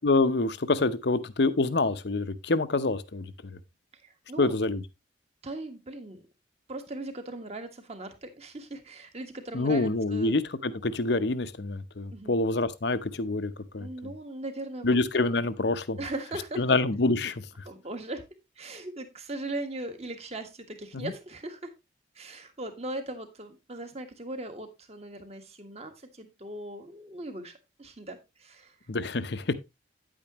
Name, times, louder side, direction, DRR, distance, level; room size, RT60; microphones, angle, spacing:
voice 1, 0.0-3.6 4.4-4.8 9.5-13.9 14.8-16.0 16.6-17.4 20.9-21.1 28.9-29.5, left 3 dB, 60° left, 0.8 m, -26 dB
voice 2, 4.0-4.6 5.4-6.2 6.7-10.4 12.1-12.4 13.8-15.0 16.0-16.8 17.6-18.2 18.6-21.7 22.1-27.5 27.8-28.7, right 2 dB, 35° right, 1.5 m, -39 dB
9.5 x 8.8 x 3.0 m
head